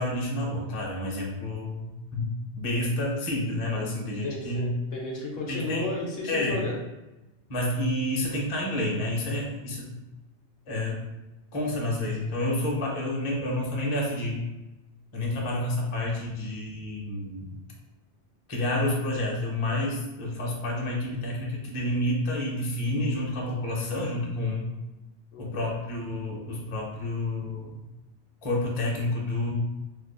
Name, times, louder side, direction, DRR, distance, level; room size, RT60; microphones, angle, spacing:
voice 1, 0.0-2.2 2.6-4.7 5.5-5.9 6.3-6.7 7.5-9.9 10.7-11.1 11.5-14.5 15.1-17.6 18.5-24.8 25.4-27.8 28.4-29.5, left 1 dB, 35° left, -2 dB, 0.6 m, -29 dB
voice 2, 4.2-6.8 25.3-25.6, left 2 dB, 65° left, -2 dB, 0.8 m, -33 dB
2.6 x 2.3 x 3.7 m, 1.0 s
omnidirectional pair, 1.2 m